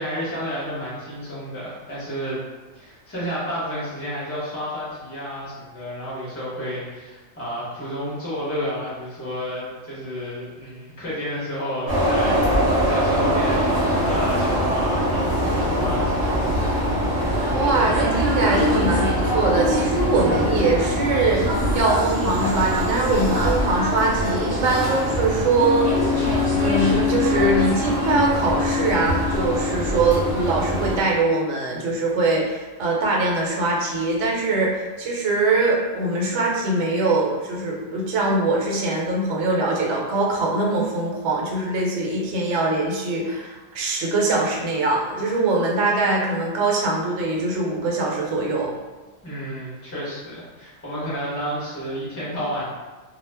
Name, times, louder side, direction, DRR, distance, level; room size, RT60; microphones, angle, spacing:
voice 1, 0.0-2.4 2.7-13.7 14.1-16.9 17.3-17.7 49.2-52.7, equal, 15° left, -8 dB, 0.5 m, -31 dB
sound 1, 11.9-31.0, equal, 25° right, 0.6 m, -23 dB
voice 2, 17.5-26.1 26.6-48.8, right 2 dB, 70° right, -2 dB, 0.9 m, -22 dB
Wind instrument woodwind instrument, 25.5-29.9, left 8 dB, 65° left, 0.7 m, -25 dB
2.2 x 2.0 x 3.2 m, 1.2 s
omnidirectional pair, 1.4 m